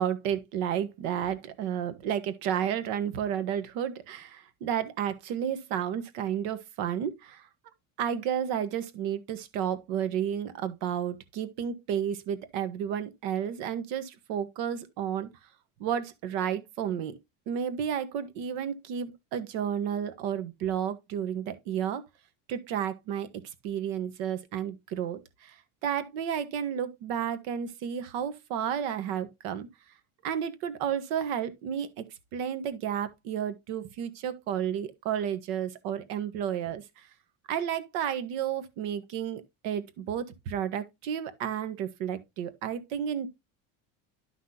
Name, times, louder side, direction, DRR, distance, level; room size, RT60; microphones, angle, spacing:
voice 1, 0.0-7.5 8.0-15.3 15.8-17.2 17.5-22.0 22.5-23.3 23.6-25.6 25.8-29.7 30.2-32.0 32.3-37.1 37.5-43.3, right 9 dB, 80° right, 1.4 m, -32 dB
11.5 x 6.0 x 2.8 m
cardioid pair, 170°, 37 cm